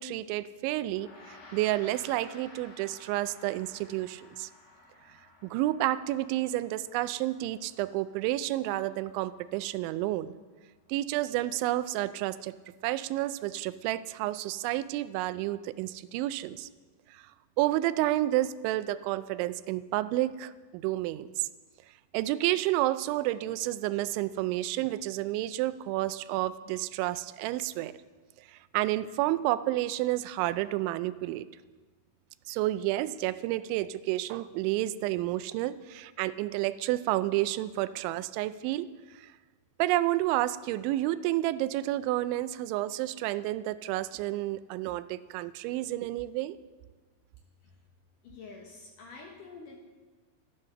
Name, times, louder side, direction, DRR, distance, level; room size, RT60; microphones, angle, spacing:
voice 1, 0.0-4.5 5.4-10.3 10.9-12.6 12.8-16.7 17.1-17.2 17.6-21.5 22.1-27.9 28.4-31.5 32.5-38.9 39.2-39.3 39.8-46.6, right 15 dB, 90° right, 14 dB, 2.9 m, -30 dB
Gong, 0.9-10.4, left 3 dB, 80° left, 5.7 m, -55 dB
voice 2, 48.2-49.8, left 4 dB, 65° left, 0 dB, 2.3 m, -47 dB
14.0 x 9.8 x 6.6 m, 1.4 s
omnidirectional pair, 5.2 m